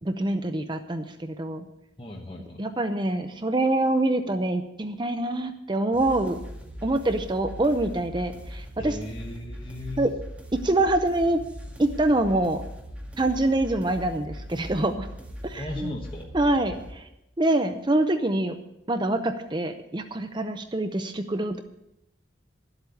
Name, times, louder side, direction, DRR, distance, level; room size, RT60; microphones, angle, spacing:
voice 1, 0.0-1.7 2.6-6.4 6.8-9.0 10.0-10.1 10.5-11.4 11.8-12.6 13.2-15.1 15.4-15.9 16.3-17.1 17.4-18.6 18.9-21.6, right 2 dB, 25° right, 8 dB, 0.6 m, -25 dB
voice 2, 2.0-2.6 8.8-10.1 15.5-16.3, left 2 dB, 25° left, -1 dB, 1.3 m, -36 dB
sound 1, 5.9-16.9, equal, 5° right, 1.9 m, -40 dB
12.5 x 8.1 x 7.0 m, 0.86 s
head